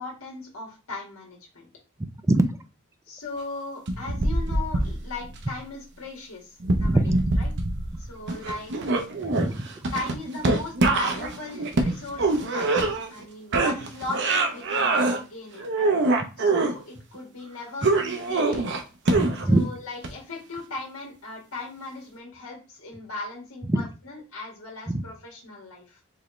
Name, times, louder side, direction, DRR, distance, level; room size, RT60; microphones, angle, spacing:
voice 1, 0.0-1.7 3.1-7.5 8.1-8.7 9.9-15.9 16.4-17.9 18.2-18.7 19.5-26.0, left 2 dB, 75° left, -1 dB, 1.8 m, -38 dB
voice 2, 2.0-2.5 6.8-7.1 9.2-9.6 9.8-9.9 19.1-19.6 23.7-23.8 24.9-25.0, right 1 dB, 15° right, 9 dB, 0.4 m, -23 dB
sound 1, 3.9-5.4 6.6-8.0 8.3-13.2 13.5-15.2 15.6-16.7 17.8-19.6 20.0-20.1, right 2 dB, 60° right, 0.8 m, -24 dB
4.7 x 3.3 x 3.1 m, 0.31 s
head